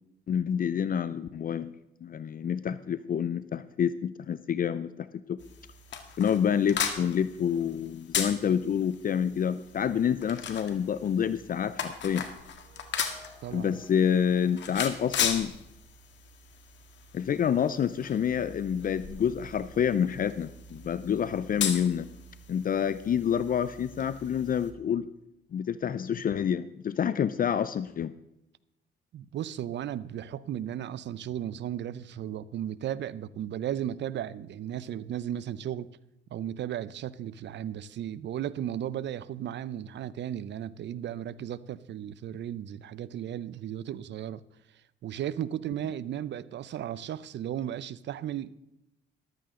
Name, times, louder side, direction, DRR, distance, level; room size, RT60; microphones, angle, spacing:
voice 1, 0.3-1.7 2.0-5.4 6.2-12.2 13.5-15.5 17.1-22.1 22.5-25.1 25.5-28.1, left 8 dB, 45° left, 0.5 m, -28 dB
sound 1, 5.4-24.7, left 7 dB, 65° left, 1.7 m, -38 dB
sound 2, 12.2-16.1, equal, 90° right, 4.4 m, -58 dB
voice 2, 13.4-13.8 29.1-35.9 36.3-44.4 45.0-48.6, right 10 dB, 65° right, 0.6 m, -35 dB
14.0 x 12.5 x 3.7 m
cardioid pair, 90°, 20 cm